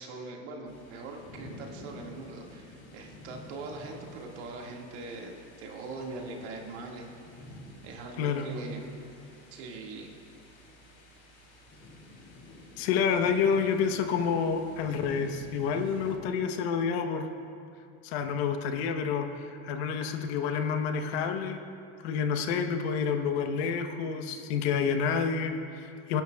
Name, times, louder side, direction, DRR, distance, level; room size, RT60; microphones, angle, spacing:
voice 1, 0.0-7.1 7.8-8.8 9.5-10.1, right 3 dB, 75° right, 0 dB, 2.0 m, -41 dB
sound 1, 0.7-16.1, left 1 dB, 35° left, 3.1 m, -49 dB
voice 2, 12.8-17.3 18.0-21.6 22.0-26.2, left 6 dB, 65° left, 7 dB, 1.0 m, -29 dB
23.0 x 10.5 x 2.3 m, 2.5 s
supercardioid pair, 120°, 34 cm